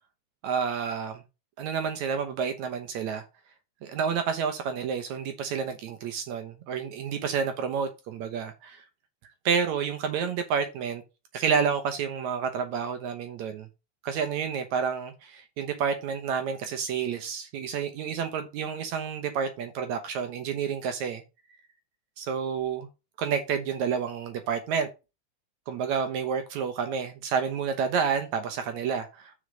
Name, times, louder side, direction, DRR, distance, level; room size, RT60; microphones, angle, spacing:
voice 1, 0.4-1.2 1.6-3.2 3.8-8.8 9.5-11.0 11.3-13.7 14.0-21.2 22.2-22.9 23.2-24.9 25.7-29.3, right 6 dB, 75° right, 2.4 m, -29 dB
6.6 x 5.5 x 5.0 m
omnidirectional pair, 3.4 m